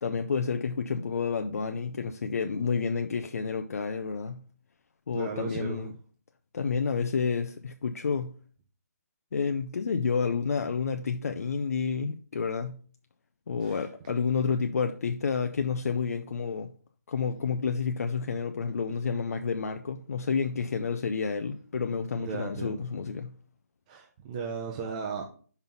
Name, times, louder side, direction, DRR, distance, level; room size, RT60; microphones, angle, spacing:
voice 1, 0.0-4.4 5.1-5.9 6.5-8.3 9.3-12.8 13.5-16.7 17.1-23.3, left 5 dB, 65° left, 0.5 m, -30 dB
voice 2, 5.1-5.9 13.6-13.9 22.2-22.8 23.9-25.2, right 5 dB, 25° right, 0.7 m, -36 dB
5.5 x 3.9 x 5.8 m
hypercardioid pair, 160°, 9 cm